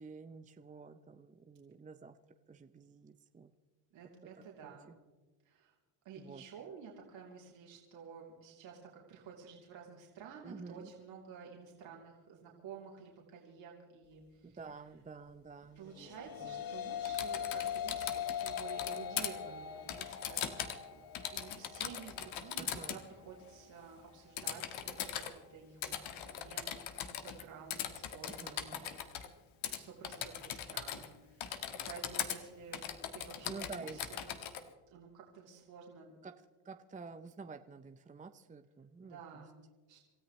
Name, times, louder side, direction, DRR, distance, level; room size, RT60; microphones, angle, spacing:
voice 1, 0.0-2.2 2.5-3.5 4.6-5.0 6.2-6.4 10.4-10.9 14.4-16.1 16.4-16.6 22.6-23.0 28.3-29.0 33.4-34.0 36.2-36.3 36.6-39.4, right 4 dB, 15° right, 8 dB, 0.6 m, -50 dB
voice 2, 3.9-4.9 5.4-5.7 6.0-14.6 15.7-29.3 29.7-31.5 31.9-34.2 34.9-36.2 39.0-39.6 39.9-40.0, right 6 dB, 65° right, -3 dB, 3.4 m, -52 dB
sound 1, 15.9-25.1, left 9 dB, 45° left, 1.2 m, -42 dB
Typing, 17.0-19.3 19.9-20.8 21.1-23.0 24.4-25.3 25.8-27.4 27.7-29.3 29.6-29.8 30.0-31.1 31.4-32.4 32.7-34.6, left 10 dB, 75° left, 1.6 m, -40 dB
27.5 x 14.0 x 3.2 m, 1.3 s
cardioid pair, 100°, 48 cm